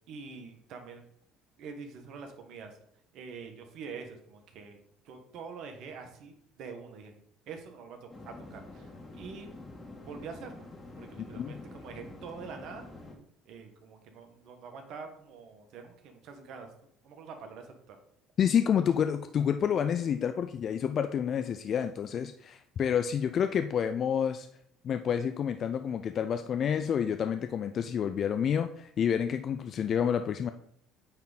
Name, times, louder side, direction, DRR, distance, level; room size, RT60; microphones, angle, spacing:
voice 1, 0.1-1.0 1.6-2.8 3.1-9.5 10.0-10.6 11.0-12.9 13.4-16.7 17.0-18.0, right 5 dB, 65° right, 5 dB, 1.3 m, -45 dB
sound 1, 8.1-13.1, left 2 dB, 25° left, 1.8 m, -47 dB
voice 2, 11.2-11.5 18.4-24.5 24.8-30.5, left 8 dB, 50° left, 8 dB, 0.4 m, -29 dB
8.7 x 3.6 x 4.1 m, 0.67 s
supercardioid pair, 80°, 0 cm